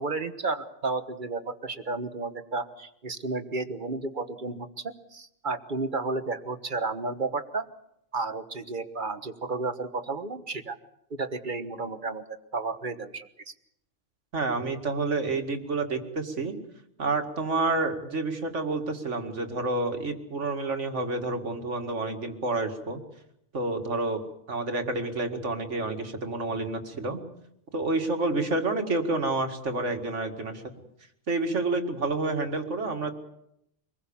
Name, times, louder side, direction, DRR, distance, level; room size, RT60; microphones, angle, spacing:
voice 1, 0.0-7.6 8.1-10.8 11.1-13.5, right 3 dB, 40° right, 10 dB, 1.4 m, -32 dB
voice 2, 14.3-16.6 17.0-23.0 23.5-24.2 24.5-27.2 27.7-30.6 31.3-33.1, right 3 dB, 70° right, 6 dB, 2.5 m, -29 dB
25.0 x 20.5 x 7.2 m, 0.77 s
omnidirectional pair, 1.3 m